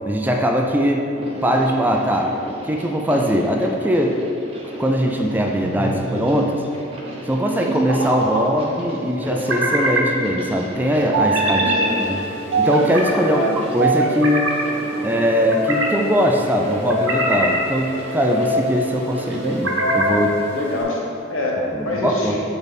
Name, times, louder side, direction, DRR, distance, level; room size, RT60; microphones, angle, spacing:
voice 1, 0.1-1.1 1.4-2.3 2.6-4.2 4.8-6.6 7.2-11.7 12.0-12.2 12.6-13.4 13.7-14.5 15.0-20.4 21.7-22.4, equal, 10° right, 1 dB, 0.4 m, -20 dB
sound 1, 1.1-19.6, right 1 dB, 30° right, 0.8 m, -37 dB
sound 2, 5.6-6.3 7.7-8.4 9.3-10.1 11.1-11.9 12.5-13.1 13.8-14.6 15.3-15.9 16.7-17.6 18.2-18.7 19.4-20.2, right 1 dB, 80° right, 1.1 m, -22 dB
voice 2, 11.6-12.3 13.2-13.5 20.5-22.4, left 1 dB, 85° left, -3 dB, 1.2 m, -26 dB
sound 3, 11.8-20.8, right 5 dB, 15° left, 1.4 m, -38 dB
6.3 x 4.0 x 5.2 m, 3.0 s
head